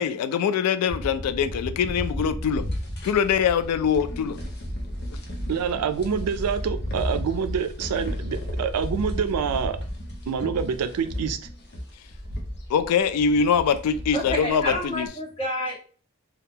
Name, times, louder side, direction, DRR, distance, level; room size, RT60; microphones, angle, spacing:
voice 1, 0.0-2.6 3.0-4.4 12.7-15.1, left 7 dB, 85° left, 15 dB, 0.3 m, -23 dB
sound 1, 0.9-15.1, equal, 50° left, 0.7 m, -33 dB
voice 2, 5.5-9.8 10.3-11.4, right 6 dB, 85° right, 10 dB, 0.4 m, -26 dB
voice 3, 14.1-15.8, equal, 25° left, -5 dB, 1.3 m, -29 dB
2.8 x 2.3 x 3.5 m, 0.41 s
head